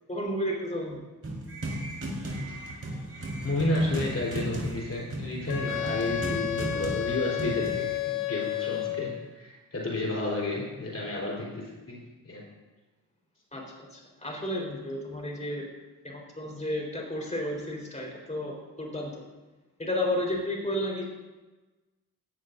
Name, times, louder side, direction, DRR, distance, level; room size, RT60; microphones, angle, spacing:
voice 1, 0.1-1.0 13.5-13.6 13.9-15.7 16.0-19.2 19.8-21.0, left 1 dB, 20° left, -1 dB, 4.4 m, -32 dB
sound 1, 1.2-8.0, right 1 dB, 35° right, 4.5 m, -35 dB
voice 2, 3.4-12.0 12.2-12.5, left 2 dB, 40° left, -3 dB, 4.3 m, -31 dB
Wind instrument woodwind instrument, 5.5-9.2, left 11 dB, 75° left, 1.9 m, -31 dB
17.0 x 14.5 x 2.7 m, 1.2 s
cardioid pair, 65°, 38 cm